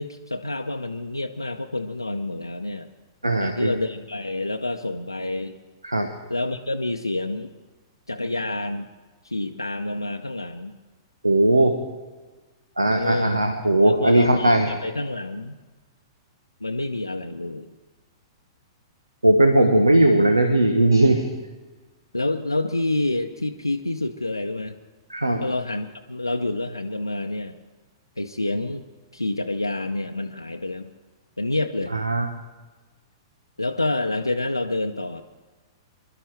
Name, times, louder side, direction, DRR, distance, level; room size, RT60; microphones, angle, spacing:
voice 1, 0.0-2.9 3.4-5.6 6.3-7.5 8.1-8.9 9.2-10.7 12.9-13.4 13.8-15.6 16.6-17.7 22.1-24.7 25.4-27.6 28.2-28.8 29.1-30.9 31.4-31.9 33.6-35.2, left 2 dB, 85° left, 4 dB, 0.7 m, -28 dB
voice 2, 3.2-3.7 5.8-6.1 11.2-11.8 12.8-14.7 19.2-21.3 25.1-25.4 31.9-32.3, right 1 dB, 85° right, 6 dB, 1.1 m, -18 dB
25.5 x 12.0 x 3.3 m, 1.3 s
figure-of-eight pair, 105°, 2 cm